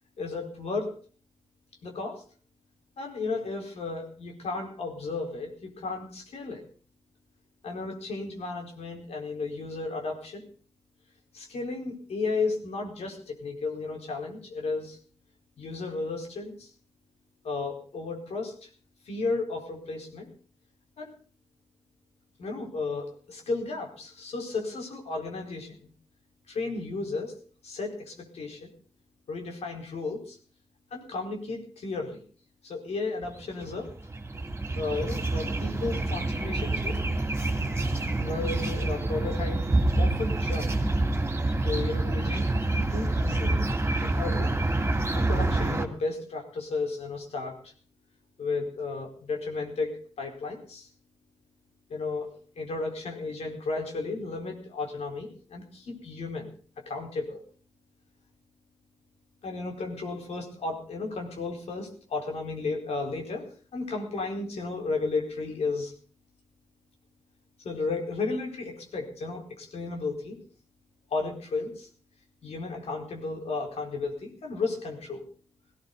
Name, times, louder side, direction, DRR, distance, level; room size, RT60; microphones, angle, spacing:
voice 1, 0.2-0.9 1.8-2.2 3.0-6.6 7.6-10.5 11.3-15.0 15.6-16.7 17.4-18.7 19.0-20.3 21.0-21.1 22.4-25.9 26.5-27.3 27.6-28.7 29.3-30.4 30.9-32.2 32.6-33.9 34.7-37.0 38.2-39.6 40.0-40.7 41.6-42.5 42.9-43.7 44.0-44.5 45.1-47.7 48.4-50.9 51.9-57.4 59.4-63.5 63.7-65.9 67.6-70.4 71.1-71.9 72.4-75.3, left 3 dB, 90° left, 2 dB, 4.5 m, -33 dB
sound 1, 33.2-45.9, right 2 dB, 25° right, 2.9 m, -27 dB
18.0 x 17.0 x 4.0 m, 0.42 s
wide cardioid pair, 85°, 11 cm